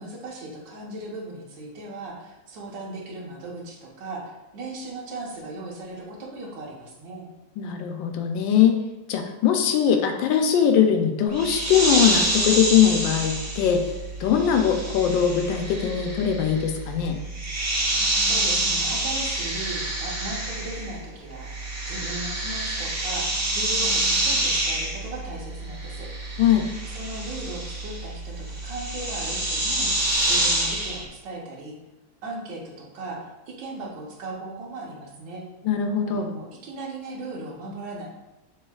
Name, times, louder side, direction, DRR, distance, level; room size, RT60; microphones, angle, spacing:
voice 1, 0.0-7.3 18.2-21.5 21.8-26.1 26.8-31.7 32.2-35.4 36.1-38.1, right 2 dB, 75° right, -2 dB, 1.6 m, -37 dB
voice 2, 7.6-8.8 9.1-13.9 14.2-17.2 26.4-26.7 35.6-36.3, left 8 dB, 90° left, 5 dB, 1.3 m, -21 dB
sound 1, 11.3-21.1 21.3-31.0, right 1 dB, 55° right, 1.6 m, -27 dB
6.3 x 3.4 x 2.3 m, 1.1 s
omnidirectional pair, 2.0 m